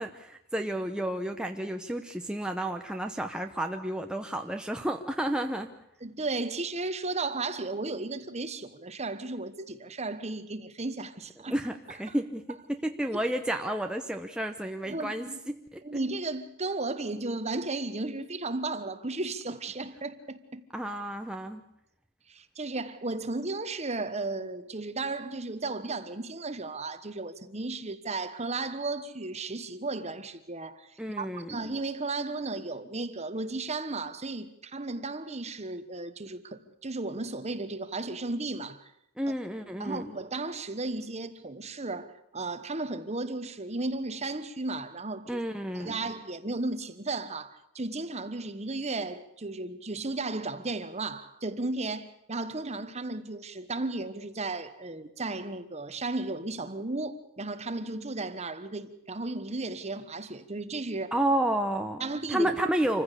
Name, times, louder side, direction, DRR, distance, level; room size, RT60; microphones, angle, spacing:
voice 1, 0.0-5.7 11.5-15.8 20.7-21.6 31.0-31.6 39.2-40.1 45.3-46.0 61.1-62.0 62.3-63.0, right 1 dB, 5° right, 0.8 m, -31 dB
voice 2, 6.0-11.5 12.1-12.2 13.1-13.3 14.9-15.4 15.8-20.6 22.3-38.9 39.3-39.4 39.8-45.4 45.7-61.1 62.0-62.5, right 3 dB, 30° right, 1.2 m, -34 dB
26.5 x 15.5 x 8.3 m
head